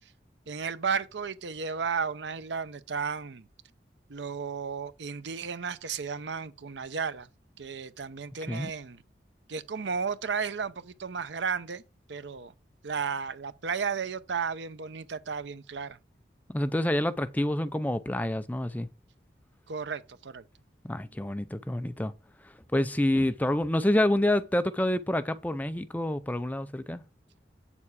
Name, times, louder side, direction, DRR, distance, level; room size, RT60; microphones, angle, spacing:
voice 1, 0.5-3.5 4.1-7.3 7.6-9.0 9.5-11.8 12.1-12.5 12.8-16.0 19.7-20.4, right 5 dB, 80° right, 0.7 m, -33 dB
voice 2, 16.5-18.9 20.8-22.1 22.7-27.0, left 1 dB, 10° left, 0.4 m, -27 dB
8.4 x 7.0 x 4.7 m
head